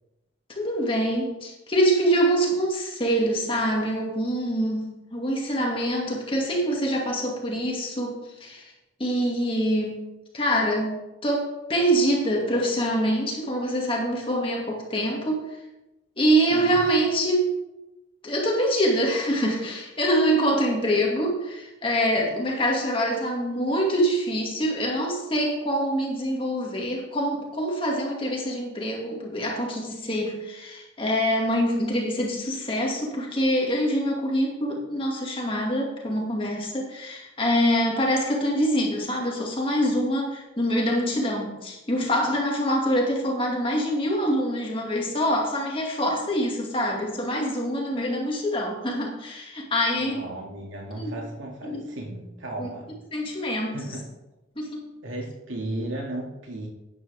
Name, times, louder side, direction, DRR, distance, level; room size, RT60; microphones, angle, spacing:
voice 1, 0.6-8.7 9.0-10.0 10.3-11.0 11.2-15.6 16.2-17.6 18.2-50.2 50.9-51.1 51.7-51.9 52.6-52.7 53.1-54.0 54.6-54.8, equal, 25° left, -1 dB, 2.2 m, -25 dB
voice 2, 16.5-16.8 49.9-52.9 53.7-54.1 55.0-56.7, right 1 dB, 85° right, -1 dB, 2.3 m, -35 dB
12.0 x 9.7 x 3.5 m, 0.98 s
head